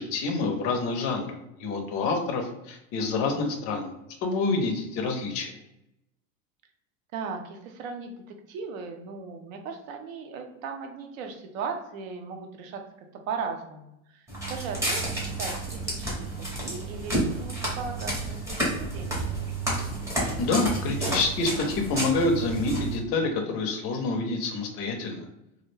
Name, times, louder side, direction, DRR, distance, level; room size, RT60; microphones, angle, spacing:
voice 1, 0.0-3.9 4.2-5.5 20.4-25.3, left 3 dB, 35° left, 3 dB, 0.5 m, -27 dB
voice 2, 7.1-12.8 13.3-19.6, right 5 dB, 70° right, 4 dB, 0.6 m, -37 dB
Walk footsteps, 14.3-23.0, right 2 dB, 5° right, 0.6 m, -30 dB
2.3 x 2.1 x 3.1 m, 0.85 s
supercardioid pair, 140°, 41 cm